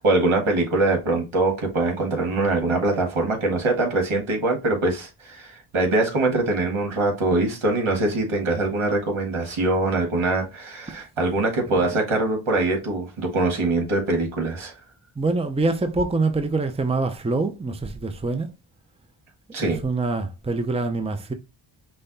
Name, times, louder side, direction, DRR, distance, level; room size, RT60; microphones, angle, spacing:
voice 1, 0.0-14.7 19.5-19.8, right 2 dB, 75° right, 1.9 m, -23 dB
voice 2, 11.7-12.0 15.2-18.5 19.6-21.3, right 3 dB, 15° right, 0.6 m, -25 dB
5.6 x 2.3 x 4.0 m
wide cardioid pair, 80°, 48 cm